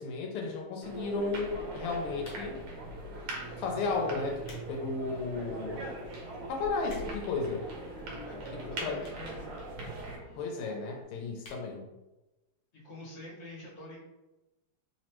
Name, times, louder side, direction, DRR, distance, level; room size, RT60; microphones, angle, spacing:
voice 1, 0.0-2.6 3.6-5.9 6.5-7.6 8.5-9.0 10.4-11.9, left 4 dB, 85° left, 2 dB, 1.6 m, -34 dB
sound 1, 0.8-10.2, right 1 dB, 75° right, 1.6 m, -41 dB
sound 2, 2.2-2.7 3.5-3.7 4.2-4.7 5.1-5.2 5.9-6.0 6.2-6.3 6.5-7.3 8.1-8.2 9.0-9.3 9.6-9.7 9.9-10.0 10.2-10.3 10.7-10.9 11.4-11.7 12.1-12.2 12.3-12.4, left 2 dB, 55° left, 1.1 m, -52 dB
sound 3, 5.1-11.0, equal, 25° right, 0.6 m, -50 dB
voice 2, 8.3-9.5 12.7-14.0, left 1 dB, 35° left, -7 dB, 1.5 m, -47 dB
3.7 x 3.1 x 2.9 m, 1.0 s
omnidirectional pair, 2.4 m